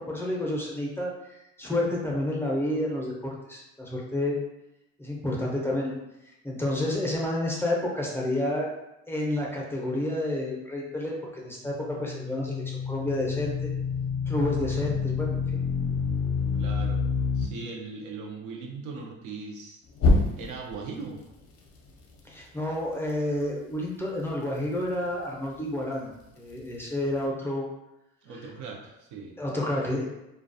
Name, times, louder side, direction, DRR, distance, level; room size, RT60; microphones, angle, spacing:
voice 1, 0.1-1.1 1.6-4.4 5.0-6.0 6.4-8.7 9.1-13.7 14.3-15.4 22.2-27.7 29.4-30.0, left 1 dB, 10° left, -3 dB, 0.5 m, -30 dB
sound 1, 11.7-17.4 20.0-20.7, left 4 dB, 50° left, 0.6 m, -27 dB
voice 2, 16.6-17.0 17.3-19.8 20.4-21.2 28.2-29.4, right 4 dB, 70° right, 1 dB, 0.6 m, -39 dB
2.2 x 2.2 x 2.6 m, 0.91 s
cardioid pair, 85°, 31 cm